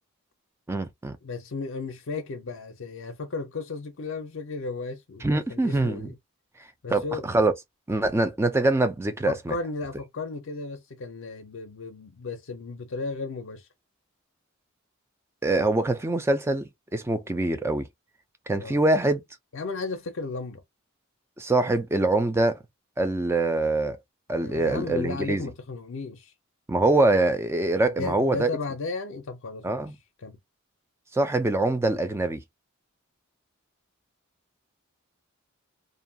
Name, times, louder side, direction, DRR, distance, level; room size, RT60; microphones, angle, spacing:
voice 1, 0.7-1.2 5.2-6.1 6.9-7.5 7.9-9.5 15.4-17.9 18.5-19.2 21.4-22.6 23.0-24.0 24.3-25.5 26.7-28.5 29.6-30.0 31.1-32.4, right 2 dB, 10° right, 0.3 m, -24 dB
voice 2, 1.2-6.2 6.8-7.3 9.3-13.7 18.6-18.8 19.5-20.6 24.4-26.3 27.9-29.8 30.2-30.4, left 3 dB, 60° left, 0.5 m, -34 dB
2.5 x 2.2 x 2.6 m
head